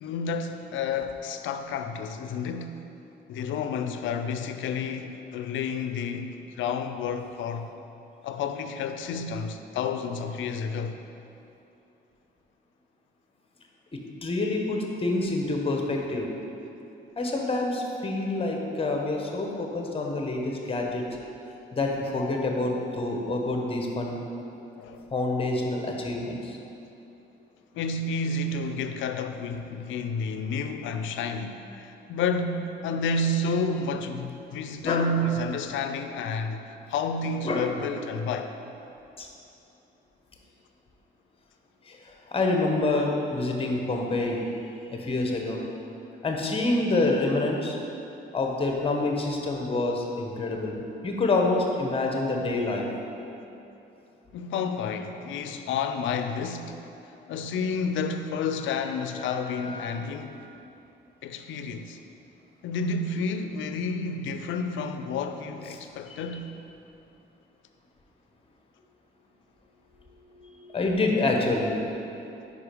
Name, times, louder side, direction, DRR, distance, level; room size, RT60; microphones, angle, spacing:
voice 1, 0.0-2.8 3.3-7.7 8.2-11.0 24.8-25.1 27.7-38.5 54.3-56.8 57.3-60.4 61.2-62.0 62.6-66.5, left 4 dB, 75° left, 8 dB, 0.4 m, -30 dB
voice 2, 13.9-16.3 17.2-21.1 21.7-24.2 25.1-26.6 34.8-35.1 37.4-37.7 39.2-39.3 41.9-44.4 44.9-45.6 46.2-47.8 48.3-50.7 51.0-52.9 59.2-60.0 66.1-66.2 70.3-71.8, left 2 dB, 30° left, 1 dB, 1.0 m, -27 dB
5.2 x 4.8 x 5.1 m, 2.9 s
cardioid pair, 90°, 20 cm